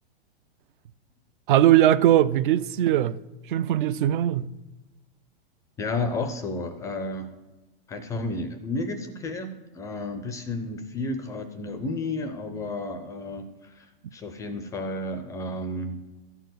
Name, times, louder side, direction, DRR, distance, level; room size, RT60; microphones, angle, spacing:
voice 1, 1.5-3.2 3.5-4.5, right 12 dB, 55° right, 0.5 m, -20 dB
voice 2, 5.8-7.3 7.9-13.9 14.1-16.0, left 2 dB, 10° left, 0.4 m, -32 dB
13.5 x 4.6 x 7.8 m
hypercardioid pair, 150°, 32 cm